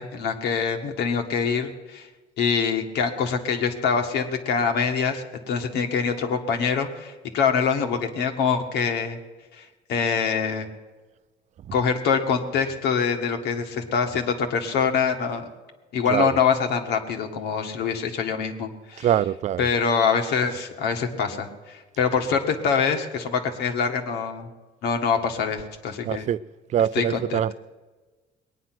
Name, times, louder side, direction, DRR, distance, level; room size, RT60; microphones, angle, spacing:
voice 1, 0.0-2.1 2.4-9.2 9.6-10.7 11.7-15.5 15.9-19.1 19.6-24.5 24.8-26.3 26.9-27.5, left 6 dB, 80° left, 1.6 m, -25 dB
voice 2, 19.0-19.6 26.0-26.4 26.7-27.5, right 10 dB, 45° right, 0.4 m, -23 dB
20.5 x 9.3 x 6.1 m
cardioid pair, 110°, 17 cm